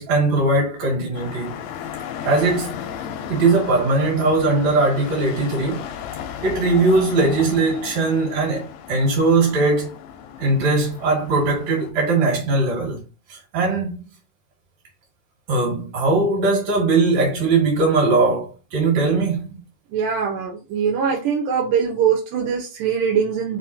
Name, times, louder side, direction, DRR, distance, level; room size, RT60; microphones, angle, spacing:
voice 1, 0.0-1.6 2.2-2.9 3.3-5.8 6.4-9.9 10.4-13.0 13.3-14.0 15.5-19.6, right 3 dB, 60° right, 2.8 m, -20 dB
sound 1, 1.1-11.9, left 9 dB, 80° left, 1.7 m, -35 dB
voice 2, 19.9-23.6, right 7 dB, 85° right, 2.2 m, -22 dB
5.3 x 2.1 x 2.7 m
omnidirectional pair, 3.6 m